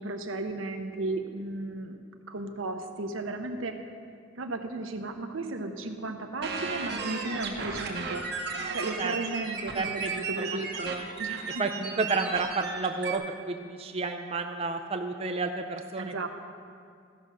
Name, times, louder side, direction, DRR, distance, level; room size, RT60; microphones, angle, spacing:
voice 1, 0.0-2.0 2.3-3.8 4.4-8.2 8.7-10.9 11.2-11.6 16.0-16.3, right 2 dB, 85° right, 5 dB, 0.9 m, -34 dB
sound 1, 6.4-13.2, right 4 dB, 55° right, 1.0 m, -35 dB
voice 2, 9.7-10.4 10.8-11.1 11.6-16.1, right 4 dB, 30° right, 5 dB, 0.4 m, -31 dB
15.0 x 5.6 x 6.1 m, 2.2 s
head